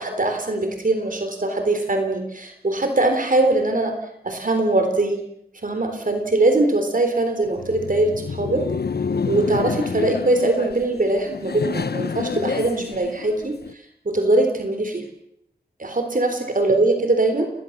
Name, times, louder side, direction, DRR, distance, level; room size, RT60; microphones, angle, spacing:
voice 1, 0.0-4.0 4.2-5.2 5.6-8.6 9.3-13.6 14.1-15.0 15.8-17.5, right 2 dB, 55° right, 6 dB, 3.6 m, -21 dB
Laughter, 7.4-13.7, left 5 dB, 80° left, 1.0 m, -28 dB
29.0 x 19.5 x 7.3 m, 0.78 s
wide cardioid pair, 70°, 17 cm